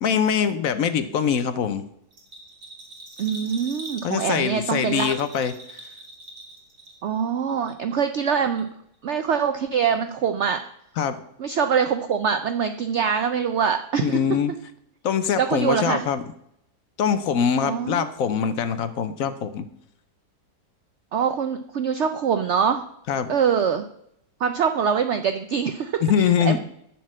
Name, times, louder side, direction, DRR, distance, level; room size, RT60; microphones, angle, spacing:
voice 1, 0.0-1.9 4.0-5.8 11.0-11.2 14.0-14.5 15.0-16.2 17.0-19.7 23.1-23.3 26.0-26.6, left 7 dB, 65° left, 11 dB, 0.9 m, -23 dB
Bell, 2.1-7.2 7.5-8.3 8.6-8.7, right 1 dB, 45° right, 2.4 m, -42 dB
voice 2, 3.2-5.1 7.0-8.7 9.0-10.6 11.4-14.2 15.4-16.0 17.6-18.1 21.1-22.8 23.3-23.9 24.4-26.6, right 7 dB, 75° right, 8 dB, 0.6 m, -24 dB
11.0 x 4.4 x 7.4 m, 0.76 s
omnidirectional pair, 1.8 m